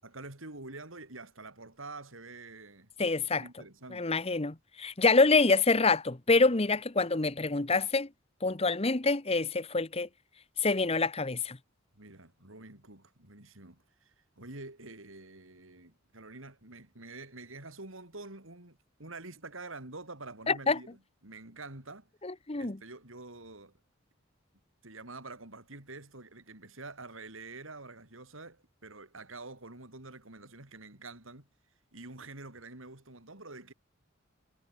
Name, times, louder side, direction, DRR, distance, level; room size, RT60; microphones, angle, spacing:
voice 1, 0.0-2.9 3.3-4.2 11.9-22.1 22.6-23.7 24.8-31.5 31.9-33.7, right 2 dB, 85° right, 5.2 m, -47 dB
voice 2, 3.0-3.4 3.9-8.1 8.4-10.1 10.6-11.6 20.5-20.8 22.2-22.8, left 3 dB, 30° left, 1.1 m, -26 dB
head